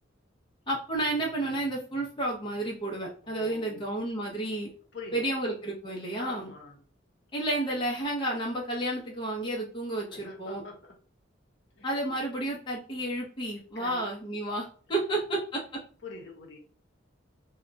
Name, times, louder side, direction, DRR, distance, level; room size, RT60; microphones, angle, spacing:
voice 1, 0.7-4.7 5.1-6.5 7.3-10.6 11.8-15.6, right 1 dB, 25° left, -2 dB, 0.5 m, -31 dB
voice 2, 3.2-3.9 4.9-5.3 6.2-6.8 10.1-11.0 11.8-11.9 13.7-14.1 16.0-16.6, left 3 dB, 60° left, 1 dB, 0.8 m, -44 dB
2.2 x 2.2 x 3.8 m, 0.40 s
head